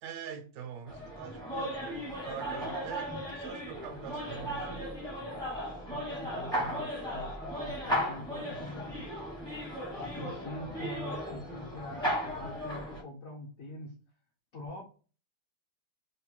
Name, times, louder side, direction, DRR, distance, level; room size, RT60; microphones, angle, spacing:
voice 1, 0.0-5.0, right 8 dB, 65° right, 1.2 m, -44 dB
sound 1, 0.9-13.0, equal, 5° left, 0.5 m, -36 dB
voice 2, 5.9-9.3 9.9-13.9 14.5-14.8, left 2 dB, 60° left, 0.8 m, -44 dB
3.3 x 2.2 x 4.3 m
omnidirectional pair, 2.2 m